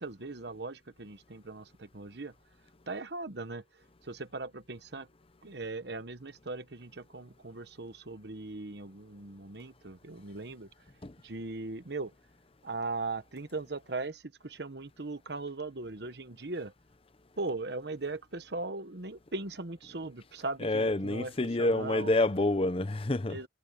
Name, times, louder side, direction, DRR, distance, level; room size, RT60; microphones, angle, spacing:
voice 1, 0.0-2.3 2.9-3.6 4.0-5.1 5.4-10.7 11.2-12.1 12.6-16.7 17.4-22.1 23.3-23.5, right 3 dB, 60° right, 1.2 m, -39 dB
voice 2, 20.6-23.4, left 2 dB, 30° left, 0.8 m, -28 dB
head